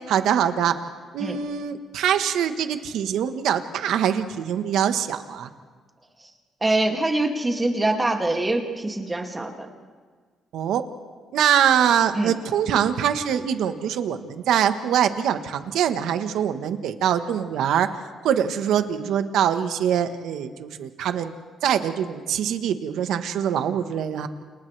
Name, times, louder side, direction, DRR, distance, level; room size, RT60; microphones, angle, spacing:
voice 1, 0.1-0.8 1.1-5.5 10.5-10.8 11.3-17.9 18.2-21.3 21.6-24.3, right 9 dB, 80° right, 9 dB, 1.3 m, -23 dB
voice 2, 6.6-9.7 12.1-12.3, right 2 dB, 20° right, 2 dB, 2.4 m, -24 dB
29.5 x 29.0 x 3.4 m, 1.5 s
cardioid pair, 90°, 0 cm